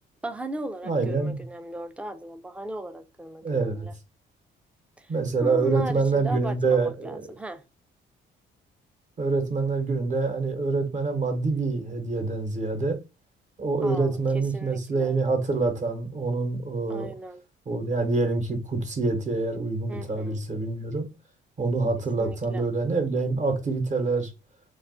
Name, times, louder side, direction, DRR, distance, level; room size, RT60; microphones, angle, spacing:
voice 1, 0.2-3.9 5.0-5.1 5.4-7.6 13.8-15.2 16.9-17.4 19.9-20.4 22.2-22.6, right 1 dB, 5° right, 0.4 m, -37 dB
voice 2, 0.8-1.4 3.4-3.9 5.1-7.3 9.2-13.0 13.6-17.1 17.7-21.1 21.6-24.3, right 3 dB, 40° right, 0.9 m, -26 dB
2.4 x 2.3 x 3.6 m
cardioid pair, 90°, 20 cm